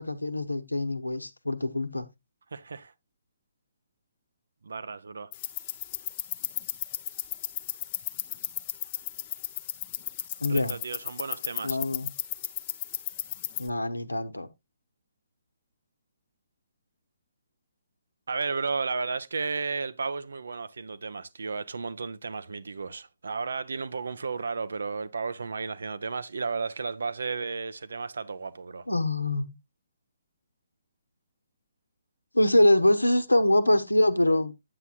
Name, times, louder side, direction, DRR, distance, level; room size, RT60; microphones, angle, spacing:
voice 1, 0.0-2.1 10.4-10.8 11.6-12.1 13.6-14.5 28.9-29.5 32.3-34.5, left 1 dB, 80° left, 1.0 m, -24 dB
voice 2, 2.5-2.9 4.6-5.3 10.4-11.8 18.3-28.9, right 4 dB, 60° right, 0.7 m, -33 dB
sound 1, 5.3-13.7, left 12 dB, 25° left, 0.7 m, -35 dB
9.7 x 8.1 x 2.4 m
figure-of-eight pair, 135°, 0 cm